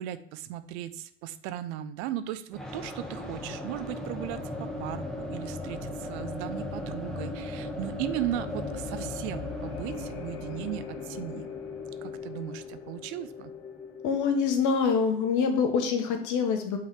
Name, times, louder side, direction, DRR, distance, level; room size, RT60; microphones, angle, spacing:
voice 1, 0.0-11.5 12.0-13.5, right 12 dB, 75° right, 13 dB, 0.6 m, -37 dB
sound 1, 2.5-14.3, left 1 dB, ahead, 1.3 m, -38 dB
sound 2, 6.1-15.7, left 9 dB, 80° left, 0.7 m, -43 dB
voice 2, 14.0-16.8, left 5 dB, 60° left, 5 dB, 1.3 m, -25 dB
5.4 x 4.0 x 4.7 m, 0.67 s
hypercardioid pair, 75°, 33 cm